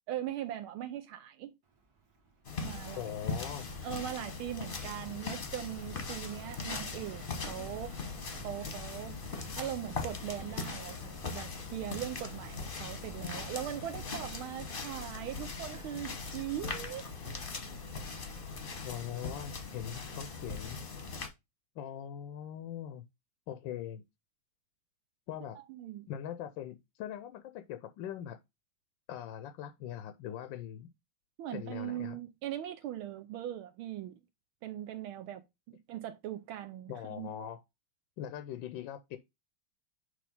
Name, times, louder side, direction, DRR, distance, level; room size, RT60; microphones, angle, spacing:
voice 1, 0.1-1.5 2.6-3.1 3.8-8.1 8.4-9.2 9.6-17.0 25.5-26.1 31.4-34.2 34.6-37.3, right 11 dB, 80° right, 1.5 m, -40 dB
Fixed-wing aircraft airplane, 1.6-19.5, right 4 dB, 50° right, 1.8 m, -55 dB
sound 1, 2.4-21.3, left 4 dB, 35° left, 1.0 m, -40 dB
voice 2, 2.9-3.7 18.8-20.8 21.8-23.0 23.5-24.0 25.3-25.6 26.1-28.4 29.1-30.9 31.5-32.2 36.9-37.6 38.2-39.2, left 10 dB, 75° left, 1.3 m, -41 dB
6.5 x 3.4 x 5.3 m
omnidirectional pair, 2.3 m